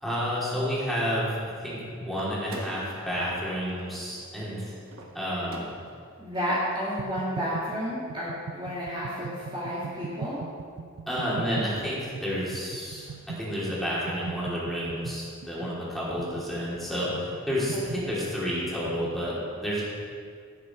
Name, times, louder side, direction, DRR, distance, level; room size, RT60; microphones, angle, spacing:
voice 1, 0.0-1.3 1.6-4.7 5.1-5.7 11.1-19.8, equal, ahead, -8 dB, 3.2 m, -30 dB
sound 1, 2.1-6.2, right 2 dB, 65° right, 1.3 m, -45 dB
voice 2, 6.2-10.4 17.7-18.2, equal, 25° right, -8 dB, 2.2 m, -31 dB
sound 2, 7.0-19.2, right 5 dB, 80° right, 0.4 m, -41 dB
17.0 x 7.0 x 4.5 m, 2.2 s
head